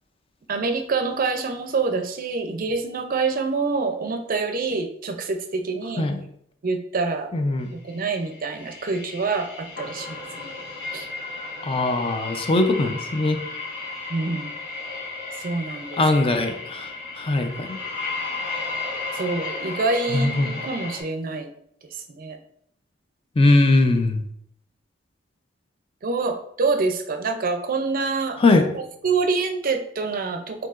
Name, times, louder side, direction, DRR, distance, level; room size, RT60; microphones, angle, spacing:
voice 1, 0.5-6.1 6.6-7.3 7.8-10.6 10.9-11.1 14.1-14.5 15.4-16.0 19.1-21.5 21.9-22.4 26.0-28.6 29.0-30.7, right 4 dB, 50° right, 6 dB, 0.5 m, -26 dB
voice 2, 7.3-7.7 11.6-13.4 16.0-16.9 17.2-17.8 20.1-20.5 23.4-24.2 28.4-28.6, left 2 dB, 30° left, 6 dB, 0.5 m, -20 dB
sound 1, 7.9-21.0, left 3 dB, 85° left, 1.7 m, -34 dB
4.6 x 3.8 x 2.4 m, 0.68 s
head